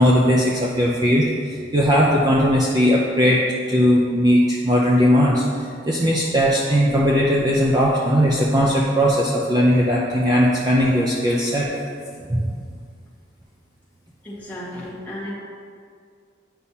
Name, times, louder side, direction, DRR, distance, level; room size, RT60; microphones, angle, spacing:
voice 1, 0.0-11.7 12.3-12.5, equal, 20° right, -4 dB, 0.5 m, -18 dB
voice 2, 14.2-15.3, left 1 dB, 10° left, -9 dB, 1.5 m, -33 dB
9.7 x 5.6 x 2.8 m, 2.2 s
head